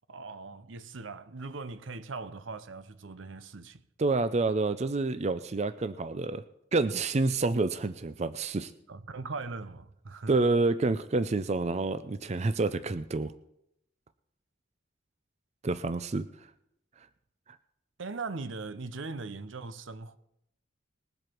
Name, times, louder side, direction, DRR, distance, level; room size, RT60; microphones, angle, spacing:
voice 1, 0.1-3.8 8.9-10.3 18.0-20.2, right 3 dB, 75° right, 0.8 m, -40 dB
voice 2, 4.0-6.4 6.7-8.7 10.3-13.3 15.6-16.3, right 3 dB, 35° right, 0.5 m, -28 dB
20.5 x 8.0 x 4.5 m
head